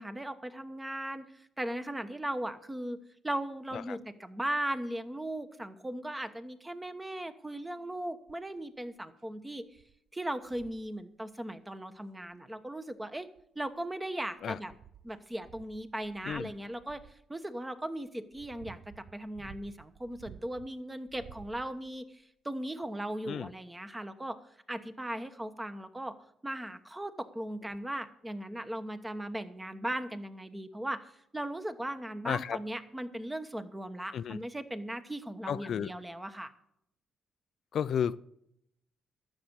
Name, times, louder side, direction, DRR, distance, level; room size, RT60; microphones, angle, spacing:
voice 1, 0.0-3.0 3.2-9.7 10.1-13.3 13.5-14.7 15.0-17.0 17.3-24.4 24.7-26.2 26.4-36.5, right 1 dB, 15° right, 1.1 m, -38 dB
sound 1, 8.3-8.6 9.2-9.3 9.7-10.0 10.4-10.9 12.3-12.4 13.2-13.9 14.4-17.2 18.0-20.7 21.1-22.0 22.8-22.9, right 8 dB, 55° right, 0.5 m, -54 dB
voice 2, 32.2-32.6 34.1-34.4 35.5-35.9 37.7-38.2, left 8 dB, 60° left, 0.4 m, -32 dB
12.0 x 7.1 x 7.9 m
cardioid pair, 90°, 0 cm